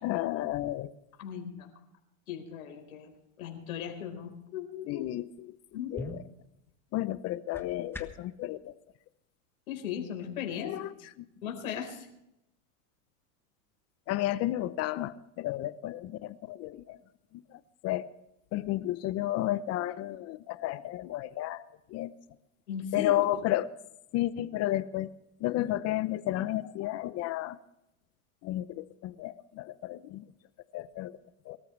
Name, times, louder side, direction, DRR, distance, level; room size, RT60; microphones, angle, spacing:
voice 1, 0.0-0.9 4.9-5.5 5.9-6.2 6.9-8.7 10.6-10.9 14.1-17.0 17.3-17.4 17.8-18.1 18.5-21.6 21.9-22.1 22.9-23.7 24.1-25.1 25.4-27.6 28.4-30.2 30.7-31.1 31.5-31.6, left 14 dB, 35° left, 14 dB, 0.8 m, -32 dB
voice 2, 1.2-1.7 2.3-3.1 3.4-5.0 5.7-6.1 9.7-10.7 11.4-12.1 22.7-23.1, left 9 dB, 90° left, 4 dB, 4.6 m, -37 dB
sound 1, 5.5-8.4, left 2 dB, 5° left, 1.3 m, -45 dB
23.5 x 14.0 x 3.3 m, 0.86 s
supercardioid pair, 125°, 41 cm